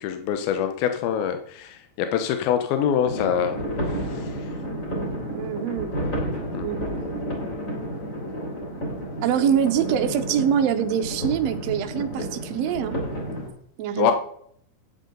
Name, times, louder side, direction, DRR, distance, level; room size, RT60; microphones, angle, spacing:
voice 1, 0.0-3.6 4.1-4.3 6.5-6.7 14.0-14.1, left 8 dB, 80° left, 7 dB, 2.6 m, -24 dB
sound 1, 3.0-13.5, equal, 20° left, 3.5 m, -31 dB
voice 2, 5.3-5.9 6.6-7.0 9.2-13.0 13.8-14.1, right 9 dB, 80° right, 5 dB, 1.5 m, -24 dB
12.0 x 9.3 x 3.9 m, 0.66 s
omnidirectional pair, 4.4 m